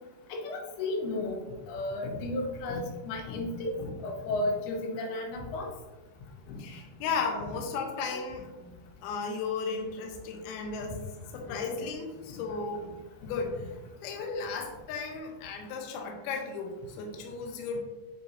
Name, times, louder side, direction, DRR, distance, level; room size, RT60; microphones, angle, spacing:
voice 1, 0.3-3.7 4.0-5.7 8.6-8.7 9.7-9.8 11.5-11.8, left 2 dB, 75° left, 0 dB, 2.5 m, -34 dB
voice 2, 3.3-4.1 6.5-8.5 9.0-11.0 11.3-17.8, left 4 dB, 90° left, 2 dB, 2.2 m, -35 dB
9.5 x 3.8 x 2.6 m, 1.1 s
omnidirectional pair, 5.3 m